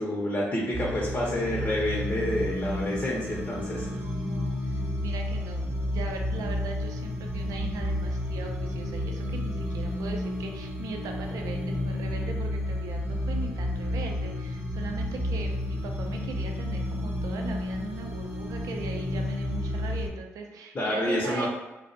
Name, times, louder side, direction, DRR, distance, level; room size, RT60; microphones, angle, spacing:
voice 1, 0.0-3.9 20.7-21.5, left 1 dB, 35° left, -4 dB, 0.6 m, -28 dB
sound 1, 0.7-20.1, left 1 dB, 30° right, 0.8 m, -31 dB
voice 2, 3.8-21.5, right 4 dB, 75° right, 3 dB, 0.4 m, -39 dB
2.4 x 2.0 x 2.5 m, 1.0 s
supercardioid pair, 50°, 6 cm